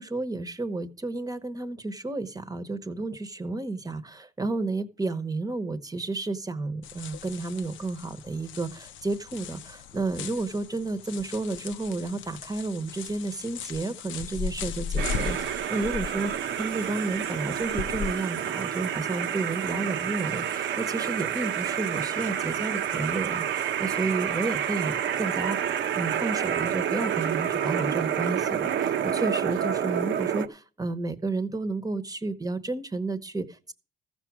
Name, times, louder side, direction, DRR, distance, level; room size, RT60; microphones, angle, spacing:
voice 1, 0.0-25.6 25.9-33.7, right 3 dB, 20° right, 13 dB, 1.0 m, -31 dB
sound 1, 6.8-18.1, left 6 dB, 75° left, 0.6 m, -37 dB
sound 2, 15.0-30.5, right 9 dB, 70° right, 0.9 m, -29 dB
14.5 x 6.1 x 6.0 m, 0.38 s
cardioid pair, 90°, 20 cm